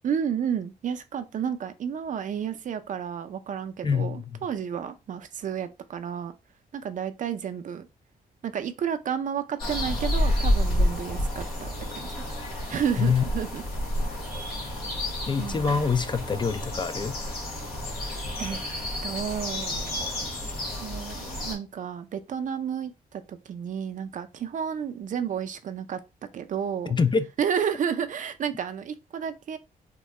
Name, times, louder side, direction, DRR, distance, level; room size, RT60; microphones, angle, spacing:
voice 1, 0.0-6.4 6.7-7.9 8.4-12.2 12.7-13.6 15.4-15.7 17.5-17.7 18.4-18.6 19.0-26.0 26.3-26.9 27.4-29.6, right 8 dB, 55° right, 0.5 m, -31 dB
voice 2, 3.8-4.4 13.0-13.2 15.3-17.2 26.9-27.3, left 5 dB, 30° left, 0.4 m, -25 dB
sound 1, 9.6-21.5, left 1 dB, 80° left, 1.5 m, -30 dB
3.6 x 2.2 x 3.1 m
cardioid pair, 95°, 15 cm